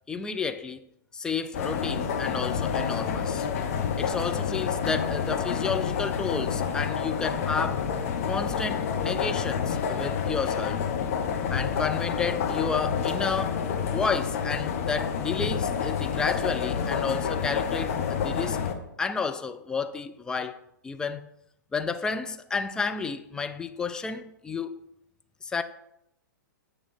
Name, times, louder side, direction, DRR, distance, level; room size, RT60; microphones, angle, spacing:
voice 1, 0.1-0.8 1.1-3.5 4.0-7.9 8.3-10.8 11.5-13.6 13.9-18.6 19.0-20.6 20.8-21.3 21.7-24.9 25.4-25.6, left 5 dB, 5° left, 0.3 m, -31 dB
sound 1, 1.5-18.7, left 7 dB, 45° left, 1.0 m, -28 dB
8.6 x 3.4 x 5.6 m
figure-of-eight pair, 115°, 11 cm